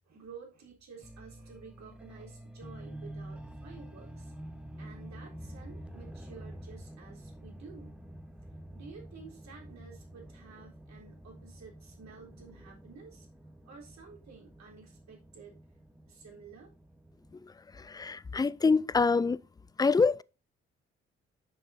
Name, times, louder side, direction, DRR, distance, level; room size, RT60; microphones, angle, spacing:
voice 1, 0.0-4.3 4.8-8.0 8.7-13.3 13.6-15.6 16.1-16.7, right 5 dB, 60° right, 3.7 m, -51 dB
sound 1, 1.0-17.4, right 1 dB, 5° right, 1.2 m, -48 dB
voice 2, 17.7-19.4 19.8-20.2, left 4 dB, 15° left, 0.3 m, -25 dB
9.7 x 6.6 x 2.6 m
hypercardioid pair, 45°, 31 cm